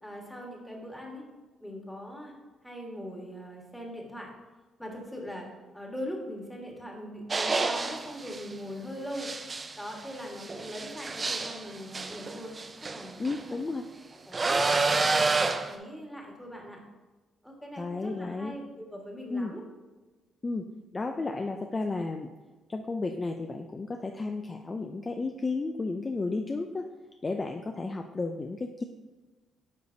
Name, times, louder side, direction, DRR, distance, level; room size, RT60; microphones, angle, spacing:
voice 1, 0.0-1.2 1.6-2.3 2.6-4.3 4.8-5.5 5.7-9.3 9.8-12.5 12.9-13.2 13.5-13.6 14.1-16.8 17.4-19.6, equal, 5° left, -1 dB, 1.5 m, -41 dB
sound 1, 7.3-8.4 9.1-13.4 14.3-15.7, right 3 dB, 30° right, 0.5 m, -29 dB
voice 2, 13.2-13.8 17.8-18.5 19.3-19.5 20.4-20.7 20.9-22.3 22.7-26.9 27.2-28.8, left 3 dB, 30° left, 4 dB, 0.4 m, -33 dB
9.4 x 4.9 x 2.7 m, 1.2 s
cardioid pair, 90°, 0 cm